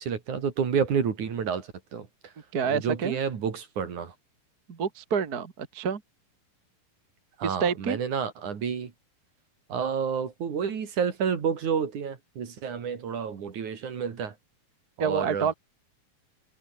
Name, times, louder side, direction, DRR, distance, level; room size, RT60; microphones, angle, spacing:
voice 1, 0.0-2.1 2.6-4.1 7.4-8.9 9.7-14.3 15.0-15.5, right 7 dB, 60° right, 4.2 m, -29 dB
voice 2, 2.5-3.2 4.7-6.0 7.4-8.0 15.0-15.5, right 6 dB, 35° right, 1.8 m, -28 dB
omnidirectional pair, 4.1 m